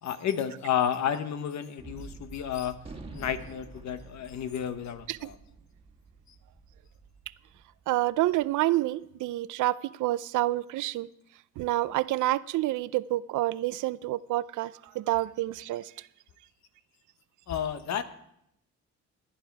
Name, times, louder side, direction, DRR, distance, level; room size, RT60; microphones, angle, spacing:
voice 1, 0.0-2.8 3.1-5.4 17.5-18.0, left 9 dB, 65° left, 1.2 m, -31 dB
Gunshot gunfire, 1.8-8.3, right 3 dB, 20° right, 1.6 m, -48 dB
voice 2, 7.9-11.1 11.6-16.1, right 16 dB, 80° right, 0.5 m, -28 dB
16.0 x 10.5 x 4.7 m
cardioid pair, 90°, 30 cm